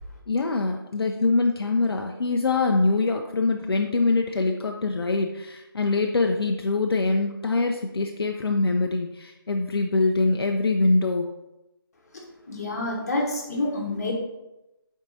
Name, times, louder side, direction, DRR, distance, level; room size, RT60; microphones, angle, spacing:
voice 1, 0.3-11.3, left 3 dB, 75° left, 3 dB, 0.4 m, -24 dB
voice 2, 12.5-14.1, left 2 dB, 40° left, 0 dB, 1.1 m, -28 dB
4.6 x 4.4 x 2.6 m, 0.94 s
figure-of-eight pair, 160°, 13 cm